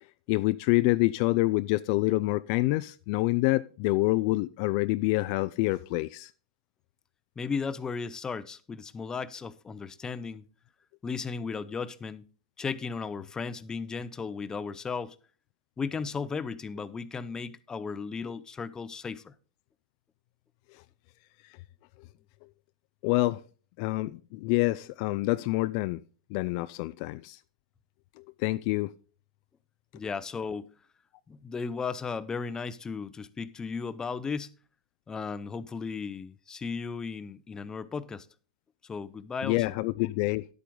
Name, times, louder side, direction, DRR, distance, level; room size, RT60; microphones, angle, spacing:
voice 1, 0.3-6.3 23.0-23.4 23.8-26.0 26.3-27.4 28.4-28.9 39.4-40.5, left 20 dB, 50° left, 0.4 m, -27 dB
voice 2, 7.4-10.4 11.0-12.3 12.6-15.2 15.8-19.3 29.9-30.7 31.3-34.5 35.1-38.3 38.8-39.6, left 5 dB, 15° left, 0.7 m, -35 dB
11.0 x 8.4 x 3.8 m
hypercardioid pair, 115°, 4 cm